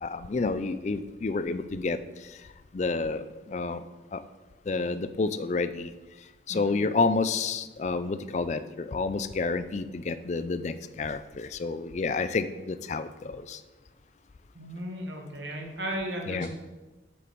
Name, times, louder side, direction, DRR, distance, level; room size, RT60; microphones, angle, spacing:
voice 1, 0.0-2.4 2.7-3.8 4.1-4.2 4.7-5.9 6.5-13.6 16.3-16.5, left 3 dB, 40° left, 12 dB, 0.4 m, -30 dB
voice 2, 14.5-16.5, right 1 dB, 75° right, 1 dB, 1.4 m, -35 dB
7.2 x 6.9 x 4.5 m, 1.2 s
head